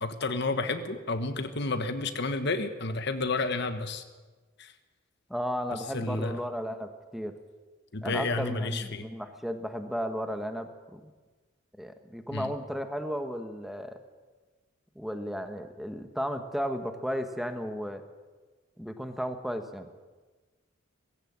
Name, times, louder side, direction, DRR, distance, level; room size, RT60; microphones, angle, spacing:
voice 1, 0.0-4.0 4.6-4.7 5.7-6.4 7.9-9.1 12.3-12.5, left 3 dB, 55° left, 9 dB, 1.3 m, -31 dB
voice 2, 5.3-7.4 8.0-11.1 11.8-14.0 14.9-18.0 18.8-19.9, equal, ahead, 7 dB, 1.4 m, -34 dB
18.5 x 16.0 x 8.8 m, 1.3 s
head